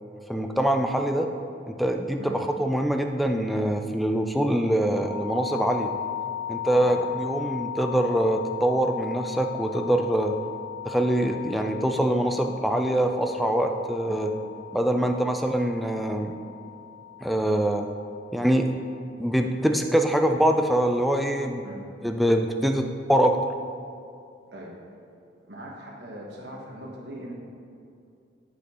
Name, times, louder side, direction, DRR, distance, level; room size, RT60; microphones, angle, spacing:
voice 1, 0.3-1.3 1.7-5.9 6.5-10.4 10.9-14.3 14.7-16.4 17.2-17.9 18.3-18.8 19.2-21.6 22.0-23.4, right 1 dB, ahead, 4 dB, 0.3 m, -24 dB
sound 1, 4.9-19.0, left 10 dB, 30° right, 1.2 m, -37 dB
voice 2, 25.5-27.3, right 1 dB, 60° right, -3 dB, 1.2 m, -40 dB
11.0 x 4.4 x 4.2 m, 2.5 s
head